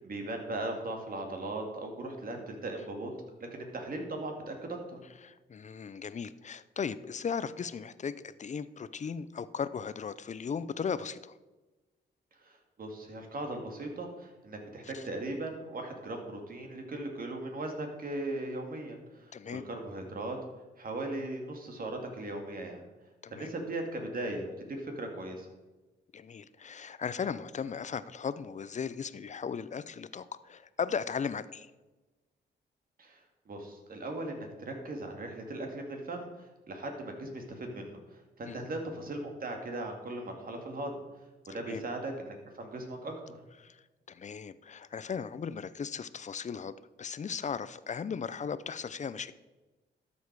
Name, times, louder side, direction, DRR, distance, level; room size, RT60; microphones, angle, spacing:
voice 1, 0.0-3.1 3.5-5.0 12.4-20.4 20.8-22.8 23.3-25.5 33.0-33.2 33.5-38.0 38.4-40.9 41.5-43.1, right 2 dB, 50° right, 3 dB, 2.3 m, -38 dB
voice 2, 5.2-11.3 14.8-15.1 19.3-19.6 23.2-23.5 26.1-31.7 38.5-38.6 41.5-41.8 43.6-49.3, left 6 dB, 40° left, 15 dB, 0.5 m, -37 dB
12.5 x 7.2 x 4.7 m, 1.2 s
cardioid pair, 80°, 18 cm